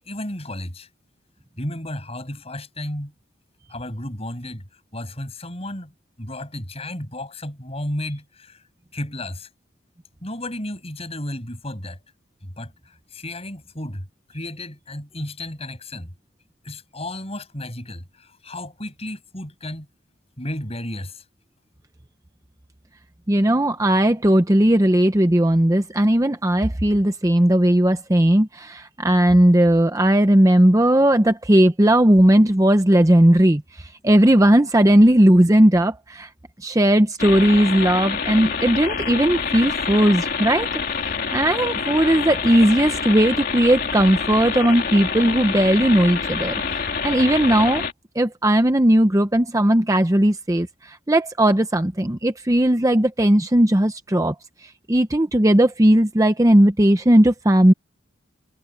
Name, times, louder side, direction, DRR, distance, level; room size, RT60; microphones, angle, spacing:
voice 1, 0.1-0.9 1.6-3.1 3.7-4.6 4.9-5.9 6.2-8.6 8.9-9.5 10.2-12.0 12.4-12.7 13.1-14.1 14.3-16.1 16.6-19.9 20.4-21.2, left 1 dB, 30° left, 6.6 m, -33 dB
voice 2, 23.3-36.3 36.6-40.7 41.3-46.5 47.0-47.8 48.1-54.3 54.6-57.7, right 1 dB, 15° right, 0.7 m, -17 dB
sound 1, 37.2-47.9, left 5 dB, 45° left, 2.6 m, -27 dB
head